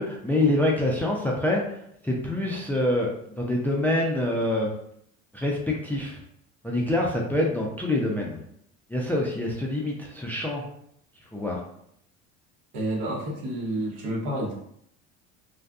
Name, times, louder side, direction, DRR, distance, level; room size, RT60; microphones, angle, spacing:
voice 1, 0.0-3.1 3.4-4.7 5.3-6.2 6.6-8.4 8.9-10.6 11.3-11.6, left 1 dB, 5° left, -1 dB, 0.4 m, -26 dB
voice 2, 12.7-14.5, right 1 dB, 70° right, -2 dB, 1.0 m, -29 dB
2.6 x 2.4 x 2.3 m, 0.72 s
hypercardioid pair, 75°, 39 cm